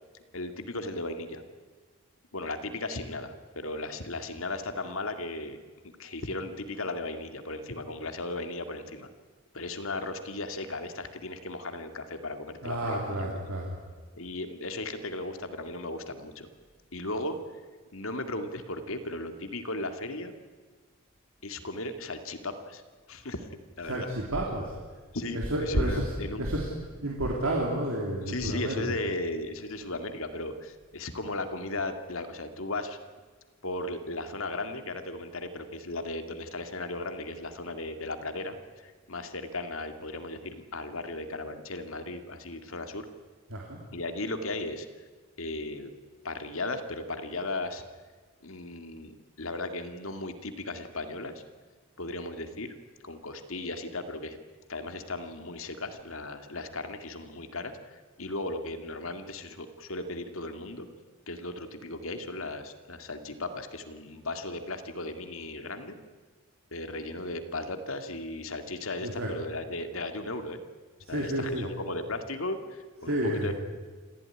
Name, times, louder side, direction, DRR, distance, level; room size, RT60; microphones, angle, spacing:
voice 1, 0.3-1.4 2.3-5.6 6.0-9.1 9.5-13.4 14.1-16.5 16.9-17.4 17.9-20.3 21.4-22.8 23.1-23.5 23.8-24.1 25.1-26.5 28.3-33.0 33.6-43.1 43.9-44.9 45.4-45.9 46.2-47.8 48.4-51.4 52.0-52.7 53.0-54.4 54.7-60.9 61.3-66.0 66.7-70.6 71.1-73.5, left 2 dB, 75° left, 8 dB, 2.2 m, -36 dB
voice 2, 12.6-13.8 23.9-24.7 25.3-26.1 26.4-26.7 27.0-28.8 43.5-43.8 69.0-69.3 71.0-71.7 73.1-73.5, right 1 dB, 80° right, -2 dB, 3.4 m, -30 dB
26.5 x 15.5 x 10.0 m, 1.4 s
head